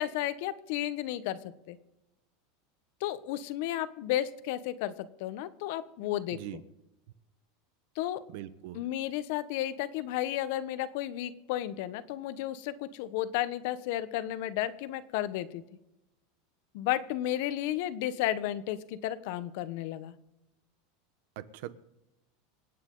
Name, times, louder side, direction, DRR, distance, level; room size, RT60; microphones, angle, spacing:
voice 1, 0.0-1.4 1.7-1.8 3.0-6.6 8.0-8.2 8.7-15.6 16.7-20.1, left 13 dB, 65° left, 13 dB, 1.0 m, -33 dB
voice 2, 8.3-8.8 21.4-21.7, right 13 dB, 65° right, 14 dB, 1.1 m, -41 dB
26.0 x 8.9 x 3.9 m, 0.94 s
supercardioid pair, 140°, 0 cm